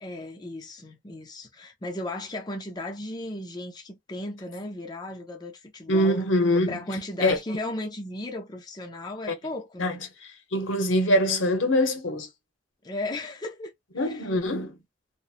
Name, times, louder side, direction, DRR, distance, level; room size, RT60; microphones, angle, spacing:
voice 1, 0.0-6.2 6.7-10.0 12.8-13.7 14.0-14.2, left 2 dB, 20° left, 0.5 m, -35 dB
voice 2, 5.9-6.8 7.2-7.4 9.3-9.4 9.8-10.0 10.5-12.3 14.0-14.8, left 1 dB, 85° left, 0.8 m, -23 dB
2.8 x 2.0 x 2.4 m
head